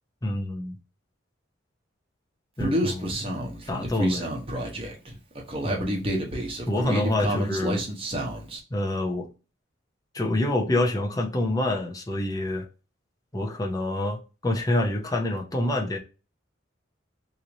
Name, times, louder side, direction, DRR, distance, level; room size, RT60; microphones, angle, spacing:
voice 1, 0.2-0.7 2.6-3.4 3.7-4.3 5.6-6.1 6.7-7.8 8.7-9.3 10.1-12.7 13.3-16.0, left 1 dB, 20° left, 0.6 m, -27 dB
Human voice, 2.6-8.6, equal, 30° right, 0.9 m, -29 dB
3.1 x 2.7 x 3.9 m
head